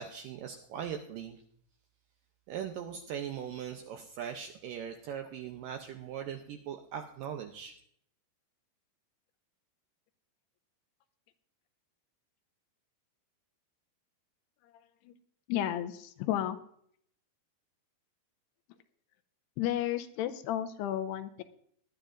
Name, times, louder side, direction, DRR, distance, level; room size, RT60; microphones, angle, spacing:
voice 1, 0.0-1.4 2.5-7.7, right 8 dB, 80° right, 4 dB, 2.0 m, -40 dB
voice 2, 15.5-16.6 19.6-21.4, left 12 dB, 85° left, 9 dB, 2.7 m, -32 dB
19.5 x 11.5 x 2.5 m, 0.65 s
omnidirectional pair, 4.7 m